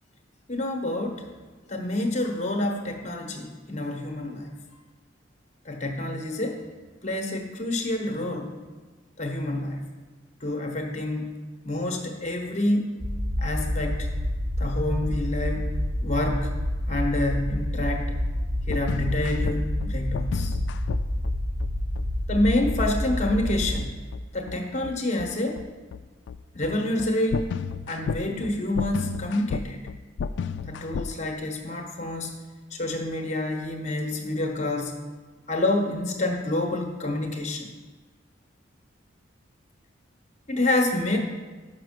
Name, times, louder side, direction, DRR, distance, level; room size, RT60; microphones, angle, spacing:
voice 1, 0.5-1.3 1.7-4.5 5.6-6.6 7.0-8.6 9.2-9.9 10.4-13.0 13.4-14.1 14.6-15.8 16.0-16.5 16.9-18.2 18.7-20.6 22.3-23.9 24.3-25.6 26.5-27.5 27.9-29.8 30.6-32.4 32.7-34.9 35.5-37.7 40.5-41.2, left 1 dB, 35° left, 3 dB, 1.1 m, -28 dB
sound 1, 13.0-23.8, left 1 dB, 5° right, 0.5 m, -28 dB
sound 2, 18.4-31.1, left 6 dB, 65° left, 0.3 m, -33 dB
6.1 x 5.8 x 6.6 m, 1.4 s
head